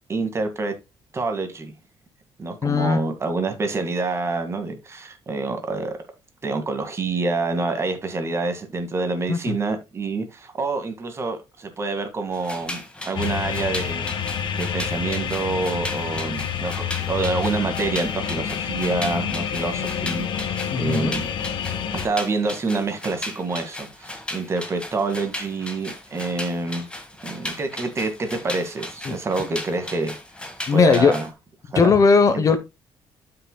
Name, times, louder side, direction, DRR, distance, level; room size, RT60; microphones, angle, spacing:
voice 1, 0.1-0.8 1.1-1.7 2.4-6.0 6.4-14.3 14.6-21.2 21.9-26.9 27.2-30.1 30.7-31.3 31.7-32.0 32.3-32.4, right 3 dB, 30° right, 2.0 m, -27 dB
voice 2, 2.6-3.0 9.3-9.6 20.7-21.1 29.1-29.2 30.7-31.1 31.7-32.6, left 5 dB, 35° left, 0.9 m, -18 dB
sound 1, 12.3-31.3, left 1 dB, 10° left, 1.8 m, -36 dB
sound 2, 13.2-22.1, left 8 dB, 60° left, 1.2 m, -28 dB
12.5 x 5.8 x 2.2 m
cardioid pair, 140°, 10 cm